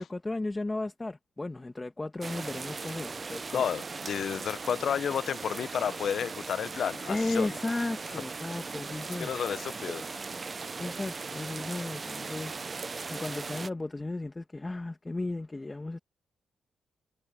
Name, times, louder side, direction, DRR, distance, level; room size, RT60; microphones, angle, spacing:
voice 1, 0.0-3.7 4.3-4.4 7.1-9.3 10.8-12.6 13.1-16.0, left 2 dB, 20° left, 1.3 m, -34 dB
sound 1, 2.2-13.7, right 4 dB, 35° right, 0.5 m, -39 dB
voice 2, 3.5-7.5 9.2-10.1, left 8 dB, 65° left, 0.7 m, -31 dB
cardioid pair, 105°, 0 cm